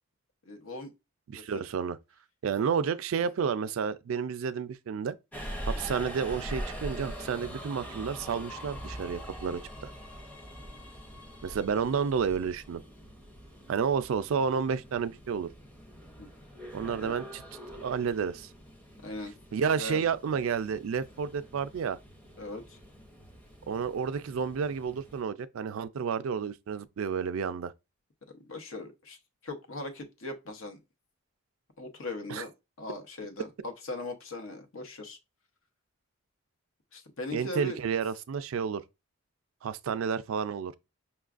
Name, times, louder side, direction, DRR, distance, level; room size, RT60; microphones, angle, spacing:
voice 1, 0.4-0.9 1.3-1.6 11.6-12.1 16.2-16.3 16.6-16.7 17.0-17.1 19.0-19.3 19.7-20.0 22.4-22.8 28.3-29.2 29.4-30.8 31.8-32.5 32.8-35.2 36.9-37.8, left 2 dB, 75° left, 0.8 m, -39 dB
voice 2, 1.3-2.0 2.4-5.2 5.7-9.9 11.4-12.8 13.7-15.5 16.7-17.4 17.8-18.5 19.5-22.0 23.7-27.7 32.3-32.4 37.3-38.8 39.6-40.7, right 6 dB, 75° right, 0.3 m, -31 dB
Subway metro underground, 5.3-25.2, equal, 5° left, 0.6 m, -43 dB
5.7 x 2.3 x 2.4 m
head